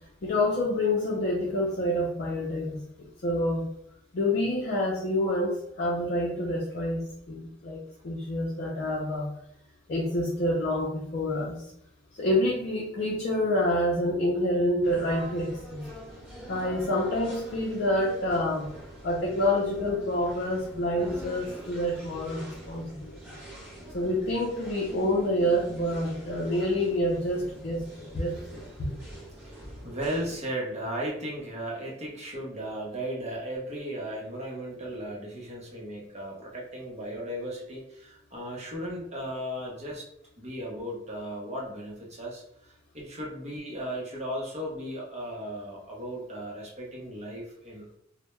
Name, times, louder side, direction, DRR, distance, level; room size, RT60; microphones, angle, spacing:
voice 1, 0.2-2.8 3.2-3.7 4.1-9.3 9.9-11.6 12.2-15.9 16.5-18.7 19.0-23.1 23.9-28.7, left 1 dB, 50° left, -3 dB, 0.5 m, -27 dB
sound 1, 14.8-30.4, right 1 dB, 10° right, 1.0 m, -44 dB
voice 2, 29.4-40.1 40.4-47.9, right 1 dB, 35° right, -3 dB, 0.7 m, -36 dB
2.2 x 2.1 x 3.0 m, 0.73 s
head